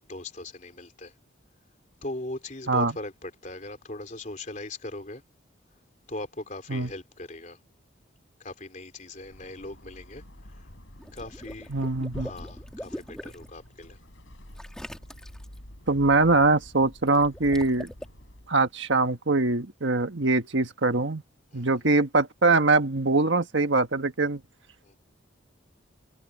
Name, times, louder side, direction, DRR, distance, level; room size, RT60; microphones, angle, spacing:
voice 1, 0.1-1.1 2.0-5.2 6.1-7.6 8.4-10.2 11.1-11.8 12.2-14.0 21.5-21.7 24.8-25.0, left 2 dB, 40° left, 3.7 m, -39 dB
sound 1, 9.0-18.6, equal, 75° left, 5.1 m, -47 dB
Water / Liquid, 11.0-13.5 14.5-15.6 17.1-18.0, equal, 5° left, 1.8 m, -42 dB
voice 2, 11.7-12.3 15.9-17.9 18.5-21.2 21.5-24.4, right 3 dB, 65° right, 1.5 m, -23 dB
head